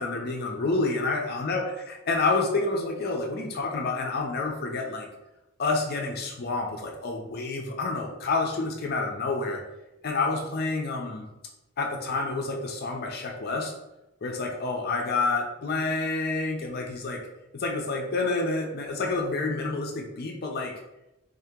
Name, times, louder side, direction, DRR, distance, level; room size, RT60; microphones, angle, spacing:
voice 1, 0.0-5.1 5.6-9.6 10.0-11.3 11.8-13.7 14.2-17.2 17.5-20.7, left 3 dB, 55° left, 2 dB, 0.5 m, -28 dB
3.5 x 2.8 x 3.5 m, 0.93 s
head